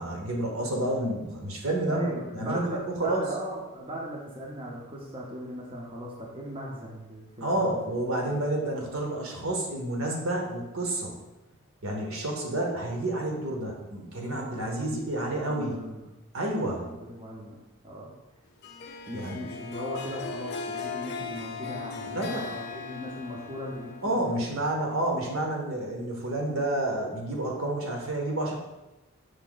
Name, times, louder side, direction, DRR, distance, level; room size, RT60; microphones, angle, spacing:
voice 1, 0.0-2.0 2.3-3.2 7.4-11.1 11.8-15.8 16.3-16.9 19.1-19.4 22.1-22.4 24.0-28.5, right 1 dB, 70° right, 0 dB, 0.9 m, -30 dB
voice 2, 1.9-7.8 8.3-8.4 14.2-16.1 16.8-17.6 17.8-18.1 19.1-24.4, equal, 25° right, -3 dB, 0.6 m, -38 dB
Harp, 18.6-24.4, left 5 dB, 45° left, 0.4 m, -38 dB
4.9 x 2.7 x 3.8 m, 1.0 s
head